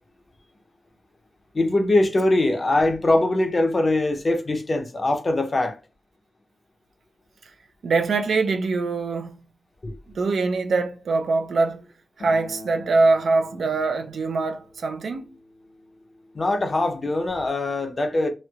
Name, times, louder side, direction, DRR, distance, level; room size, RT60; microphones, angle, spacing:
voice 1, 1.5-5.8 9.8-10.0 16.3-18.3, left 2 dB, 35° left, 0.6 m, -22 dB
voice 2, 7.8-9.4 10.1-11.9 12.2-15.3, right 3 dB, 80° right, 0.4 m, -23 dB
Acoustic guitar, 12.2-17.4, left 1 dB, 85° left, 0.8 m, -45 dB
3.1 x 2.8 x 2.3 m
wide cardioid pair, 115°, 0 cm